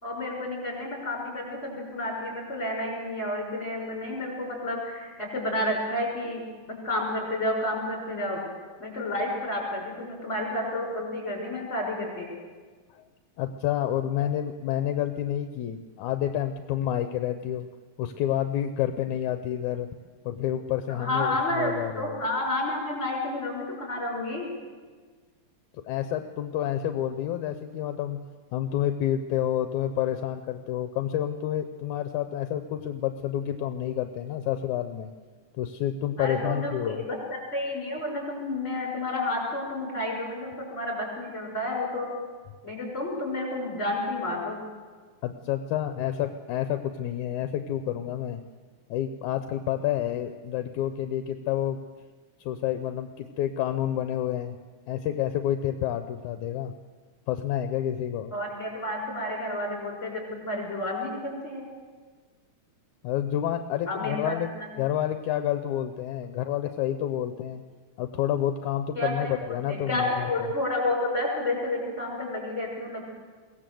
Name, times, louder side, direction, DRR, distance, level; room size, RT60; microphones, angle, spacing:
voice 1, 0.0-6.4 6.8-8.4 8.8-12.3 20.9-24.5 36.2-42.1 42.6-44.6 58.3-61.7 63.9-64.7 68.9-69.4 69.7-73.0, left 1 dB, 20° left, 0 dB, 6.1 m, -30 dB
voice 2, 13.4-17.7 18.0-19.9 20.3-22.2 25.8-28.3 28.5-35.1 35.5-37.1 45.2-48.4 48.9-51.8 52.4-54.6 54.9-56.7 57.3-58.3 63.0-64.5 64.8-67.6 68.0-70.5, left 11 dB, 75° left, 9 dB, 2.2 m, -29 dB
22.5 x 17.5 x 7.7 m, 1.5 s
omnidirectional pair, 3.6 m